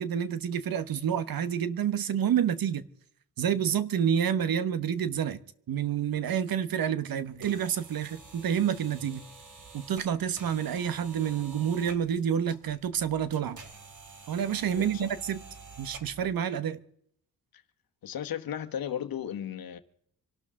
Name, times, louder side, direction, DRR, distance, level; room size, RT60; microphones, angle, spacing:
voice 1, 0.0-2.9 3.4-5.4 5.7-9.2 9.7-13.6 14.3-15.4 15.8-16.8, right 8 dB, 75° right, 1.1 m, -28 dB
sound 1, 7.1-16.3, right 4 dB, 55° right, 2.8 m, -49 dB
voice 2, 14.7-15.1 18.0-19.8, left 9 dB, 75° left, 1.2 m, -35 dB
26.0 x 12.0 x 3.7 m
cardioid pair, 110°, 36 cm